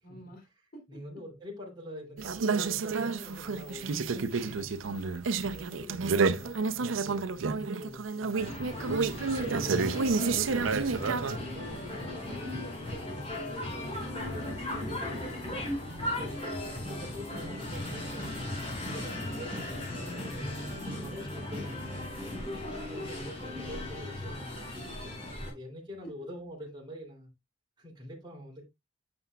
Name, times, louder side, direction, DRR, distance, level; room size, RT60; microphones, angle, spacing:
voice 1, 0.0-1.0 4.3-5.3 22.2-22.6, equal, 55° left, 3.3 m, -52 dB
voice 2, 0.9-5.0 5.5-8.3 8.9-10.1 10.5-15.4 16.7-20.5 20.9-21.9 22.9-24.8 25.3-27.3 27.8-28.6, equal, 25° right, 3.0 m, -45 dB
sound 1, 2.2-11.4, right 4 dB, 85° right, 0.6 m, -30 dB
sound 2, 8.4-25.5, left 1 dB, 30° left, 4.5 m, -37 dB
9.6 x 6.9 x 2.3 m
head